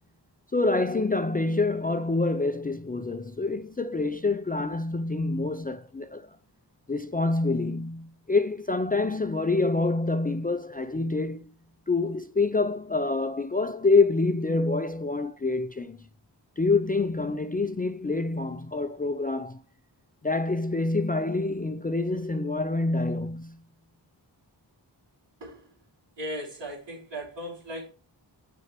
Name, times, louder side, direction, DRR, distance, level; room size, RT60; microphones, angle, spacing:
voice 1, 0.5-6.4 6.9-11.5 11.9-16.0 16.6-19.6 20.2-23.6, left 3 dB, 20° left, 0.4 m, -26 dB
voice 2, 25.4-25.7 26.2-27.9, equal, 80° right, 3.2 m, -37 dB
7.8 x 5.8 x 3.0 m
wide cardioid pair, 85°, 43 cm